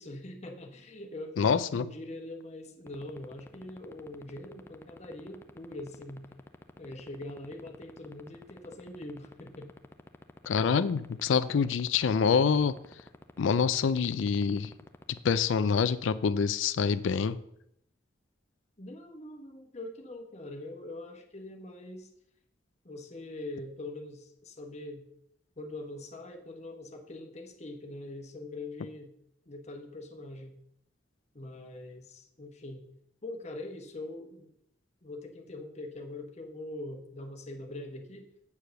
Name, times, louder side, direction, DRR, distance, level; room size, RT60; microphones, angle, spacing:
voice 1, 0.0-6.3 6.8-9.7 18.8-22.1 22.8-25.0 25.6-29.1 29.5-30.6 31.3-32.8 33.2-34.5 35.0-38.3, left 2 dB, 35° left, 3 dB, 1.1 m, -43 dB
voice 2, 1.4-1.9 10.5-12.8 13.4-14.7 15.2-17.4, left 6 dB, 85° left, 14 dB, 0.4 m, -26 dB
sound 1, 2.9-15.2, left 2 dB, 15° left, 0.4 m, -47 dB
8.4 x 4.7 x 6.4 m, 0.74 s
head